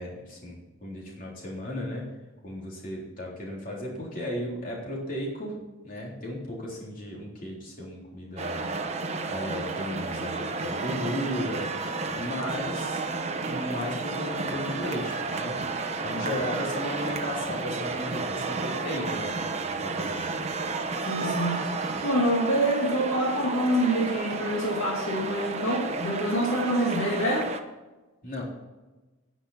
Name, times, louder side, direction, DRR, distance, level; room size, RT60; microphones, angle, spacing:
voice 1, 0.0-2.1 2.4-5.6 5.8-8.6 9.3-11.7 12.1-13.0 13.4-15.6 16.0-19.3 19.7-20.4 28.2-28.4, left 1 dB, 40° left, -3 dB, 3.7 m, -35 dB
sound 1, 8.4-27.6, right 3 dB, 30° right, 0.9 m, -32 dB
voice 2, 21.1-21.6 22.0-27.4, right 1 dB, 75° left, -1 dB, 2.3 m, -26 dB
10.0 x 9.9 x 5.8 m, 1.1 s
head